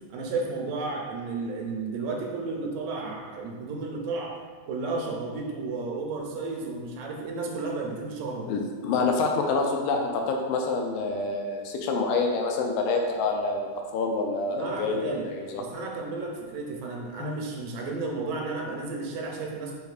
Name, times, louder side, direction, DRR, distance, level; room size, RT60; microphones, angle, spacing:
voice 1, 0.1-4.3 4.7-8.5 14.5-15.3 15.6-19.8, right 3 dB, 85° right, 0 dB, 2.2 m, -33 dB
voice 2, 8.5-15.6 17.2-17.3, left 3 dB, 90° left, 2 dB, 2.2 m, -27 dB
5.3 x 3.4 x 2.4 m, 1.5 s
omnidirectional pair, 3.7 m